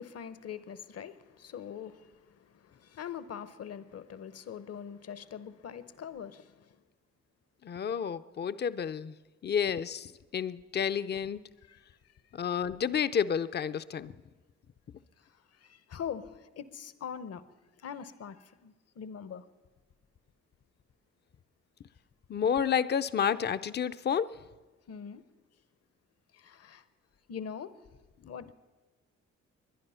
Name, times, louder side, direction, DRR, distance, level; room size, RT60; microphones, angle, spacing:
voice 1, 0.0-6.8 11.7-11.8 15.2-17.4 17.8-19.5 24.9-25.2 26.3-26.8 27.3-27.7 28.3-28.5, left 8 dB, 55° left, 0.9 m, -43 dB
voice 2, 7.6-9.2 9.4-11.4 12.3-14.1 22.3-24.3, left 7 dB, 35° left, 0.5 m, -30 dB
21.0 x 10.5 x 5.6 m
cardioid pair, 70°, 29 cm